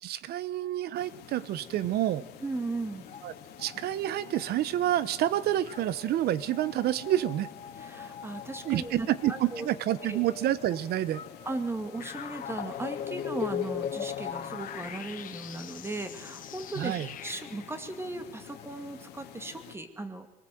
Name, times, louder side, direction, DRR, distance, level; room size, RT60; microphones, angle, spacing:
voice 1, 0.0-2.2 3.2-3.3 3.6-7.5 8.6-11.2 16.8-17.1, right 13 dB, 70° right, 17 dB, 1.0 m, -28 dB
sound 1, 0.6-2.2 2.5-19.6, left 6 dB, 35° left, 1.5 m, -52 dB
sound 2, 0.9-19.7, left 10 dB, 75° left, 2.8 m, -49 dB
voice 2, 2.4-3.1 7.8-9.7 10.1-10.2 11.5-17.0 17.2-20.3, right 2 dB, 15° right, 7 dB, 2.3 m, -37 dB
sound 3, 12.0-17.7, left 9 dB, 55° left, 1.5 m, -37 dB
23.5 x 18.5 x 7.8 m, 0.97 s
cardioid pair, 110°, 17 cm